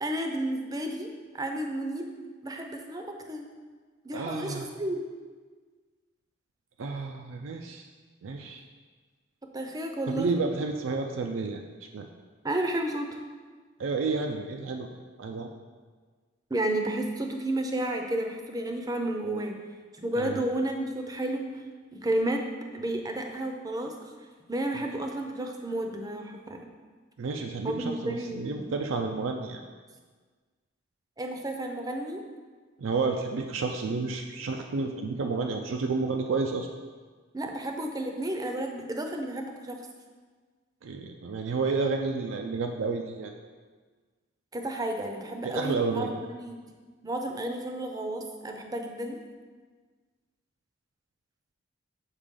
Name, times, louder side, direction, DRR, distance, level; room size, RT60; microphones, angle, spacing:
voice 1, 0.0-1.1 1.3-2.1 2.4-3.5 4.0-5.0 9.5-10.3 12.4-13.2 16.5-19.5 19.9-21.6 21.9-22.4 22.7-24.1 24.5-26.6 27.6-28.5 31.2-32.2 37.3-39.8 44.5-46.6 47.0-49.2, right 1 dB, 20° right, 3 dB, 0.5 m, -32 dB
voice 2, 4.1-4.7 6.8-7.9 8.2-8.6 10.1-11.6 11.9-12.1 13.8-14.9 15.2-15.5 20.2-20.4 27.2-29.6 32.8-36.7 40.8-43.3 45.4-46.1, right 4 dB, 85° right, 3 dB, 0.4 m, -30 dB
6.5 x 4.9 x 3.7 m, 1.5 s
head